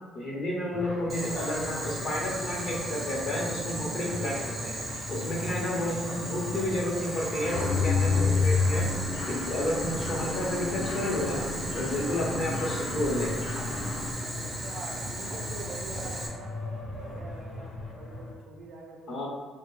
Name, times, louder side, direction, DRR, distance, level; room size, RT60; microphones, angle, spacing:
voice 1, 0.1-4.8 5.1-8.9 9.3-11.5 11.7-13.4 19.1-19.3, left 1 dB, 40° left, -3 dB, 0.9 m, -31 dB
sound 1, 0.7-18.3, left 2 dB, 75° left, 0.9 m, -39 dB
Boiling, 1.1-16.3, right 1 dB, 20° right, 0.6 m, -37 dB
Mechanisms, 7.4-14.1, left 4 dB, 55° left, 0.4 m, -30 dB
voice 2, 14.3-16.6 17.0-19.3, right 3 dB, 65° right, -3 dB, 0.5 m, -44 dB
4.3 x 2.1 x 3.2 m, 1.5 s
cardioid pair, 170°, 0 cm